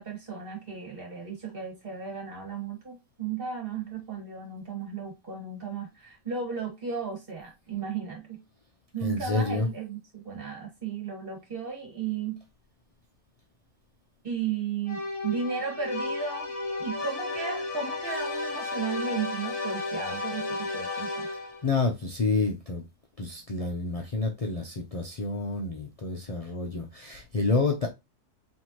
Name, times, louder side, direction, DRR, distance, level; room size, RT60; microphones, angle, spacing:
voice 1, 0.0-8.4 8.9-12.4 14.2-16.5 16.8-21.3, right 6 dB, 35° right, 1.9 m, -35 dB
voice 2, 9.0-9.7 21.6-22.8 23.2-27.9, left 3 dB, 75° left, 0.3 m, -28 dB
sound 1, 14.9-21.7, left 3 dB, 25° left, 1.0 m, -33 dB
4.5 x 3.3 x 2.9 m
omnidirectional pair, 1.6 m